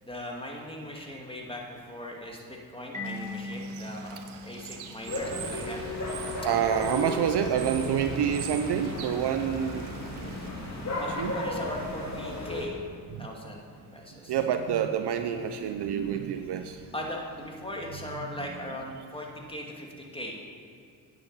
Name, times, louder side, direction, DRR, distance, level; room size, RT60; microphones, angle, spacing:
voice 1, 0.0-4.2 4.4-5.8 6.4-6.5 11.0-12.8 13.2-13.7 13.9-14.3 16.9-20.4, left 1 dB, 10° left, -1 dB, 2.4 m, -39 dB
Marimba xylophone, 2.9-5.6, left 2 dB, 15° right, 2.8 m, -40 dB
Bird / Water, 3.0-10.5, right 8 dB, 70° right, 1.0 m, -44 dB
sound 1, 5.1-12.7, left 1 dB, 35° left, 2.5 m, -35 dB
voice 2, 6.4-9.9 11.2-11.3 13.1-13.3 14.3-16.8, right 8 dB, 55° right, 8 dB, 0.7 m, -27 dB
9.5 x 8.3 x 5.6 m, 2.4 s
hypercardioid pair, 45°, 49 cm